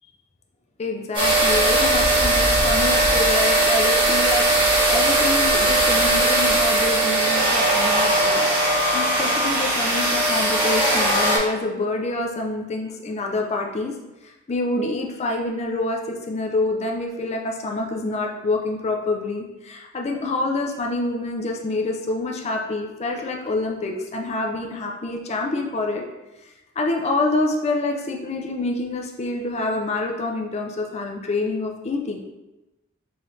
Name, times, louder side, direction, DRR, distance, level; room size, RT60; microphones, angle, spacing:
voice 1, 0.8-8.5 8.9-13.9 14.2-26.0 26.8-32.3, left 2 dB, 30° left, 1 dB, 0.4 m, -27 dB
sound 1, 1.1-11.4, right 1 dB, 25° right, 1.2 m, -19 dB
4.7 x 2.7 x 3.1 m, 1.0 s
head